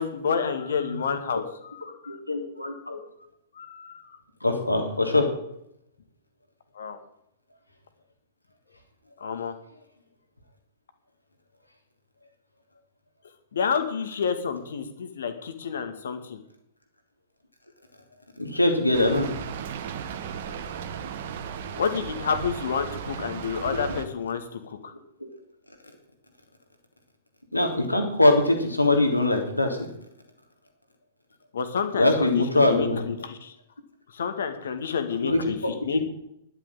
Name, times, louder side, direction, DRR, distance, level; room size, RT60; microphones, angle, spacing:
voice 1, 0.0-2.2 3.5-4.2 6.7-7.0 9.2-9.6 13.5-16.4 21.7-24.9 31.5-33.5 34.1-36.1, left 6 dB, 60° left, 9 dB, 2.2 m, -29 dB
voice 2, 2.1-3.0 4.4-5.3 18.4-19.3 27.5-29.8 32.0-33.1 35.2-36.1, left 2 dB, 85° left, 4 dB, 3.3 m, -22 dB
Rain, 18.9-24.0, right 7 dB, 50° right, 1.5 m, -35 dB
11.5 x 10.0 x 9.1 m, 0.77 s
figure-of-eight pair, 105°, 0 cm